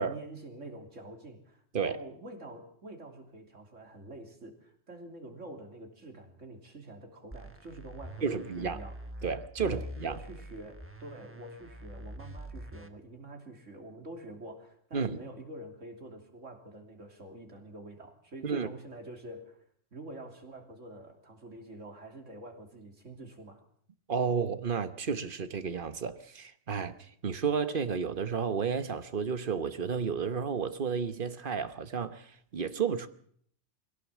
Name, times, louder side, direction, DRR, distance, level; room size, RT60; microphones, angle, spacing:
voice 1, 0.1-9.0 9.6-19.6 19.9-23.6, right 1 dB, 90° right, 3.5 m, -47 dB
sound 1, 7.3-12.9, equal, 10° right, 1.3 m, -45 dB
voice 2, 8.2-8.8 9.2-10.2 14.9-15.2 18.4-18.7 24.1-33.1, right 6 dB, 45° right, 1.2 m, -32 dB
22.5 x 17.0 x 7.4 m
omnidirectional pair, 1.2 m